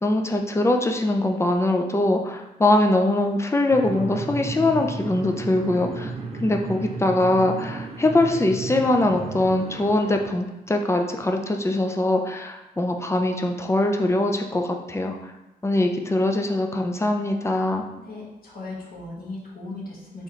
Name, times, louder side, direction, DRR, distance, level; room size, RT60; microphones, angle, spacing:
voice 1, 0.0-6.1 6.4-15.2 15.6-17.8, left 2 dB, 15° left, 4 dB, 0.4 m, -22 dB
sound 1, 3.7-10.2, right 3 dB, 40° right, 0.5 m, -34 dB
voice 2, 18.0-20.2, left 2 dB, 65° left, -5 dB, 1.4 m, -37 dB
4.1 x 3.7 x 3.1 m, 0.99 s
wide cardioid pair, 105°, 16 cm